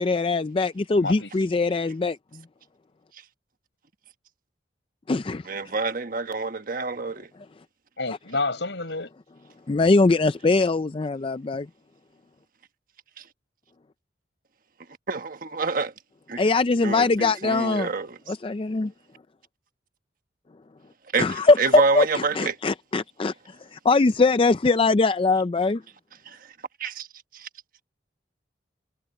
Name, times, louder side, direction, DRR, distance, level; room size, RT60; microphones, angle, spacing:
voice 1, 0.0-2.2 5.1-5.4 9.7-11.7 16.4-17.9 18.3-18.9 21.2-23.3 23.7-25.8, left 3 dB, 30° left, 0.4 m, -21 dB
voice 2, 1.0-1.5 8.0-9.1, left 3 dB, 80° left, 6.2 m, -29 dB
voice 3, 5.5-7.3 15.1-15.9 16.3-16.4 16.8-18.2 21.1-21.3 21.6-22.6 26.3-26.4 26.8-27.1 27.3-27.5, right 4 dB, 50° right, 1.3 m, -27 dB
head